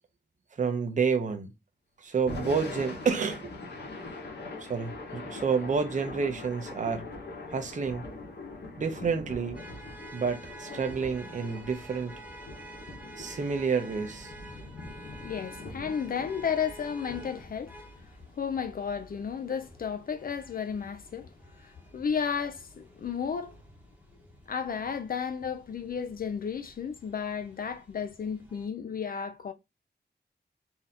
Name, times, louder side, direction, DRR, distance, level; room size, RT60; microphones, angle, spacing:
voice 1, 0.6-1.5 2.0-3.8 4.6-7.1 7.5-8.1 8.8-9.6 10.1-12.2 13.2-14.3, right 5 dB, 45° right, 0.7 m, -29 dB
Thunder / Rain, 2.1-18.4, left 2 dB, 75° left, 1.5 m, -43 dB
sound 1, 9.5-28.7, right 1 dB, 10° right, 1.1 m, -50 dB
voice 2, 15.2-17.7 18.4-21.3 21.5-23.6 24.5-29.5, left 7 dB, 55° left, 0.5 m, -33 dB
4.2 x 2.8 x 3.8 m
wide cardioid pair, 140°, 18 cm